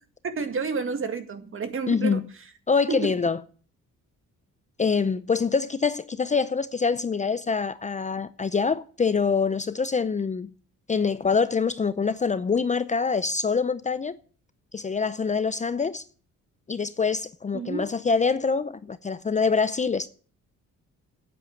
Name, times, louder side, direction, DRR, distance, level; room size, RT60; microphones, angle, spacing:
voice 1, 0.4-2.2 2.9-3.1 17.5-17.9, right 4 dB, 45° right, 2.1 m, -30 dB
voice 2, 1.9-2.3 2.7-3.4 4.8-10.5 10.9-14.2 14.7-16.0 16.7-20.1, left 5 dB, 25° left, 0.6 m, -25 dB
9.4 x 8.6 x 9.0 m
cardioid pair, 90°, 30 cm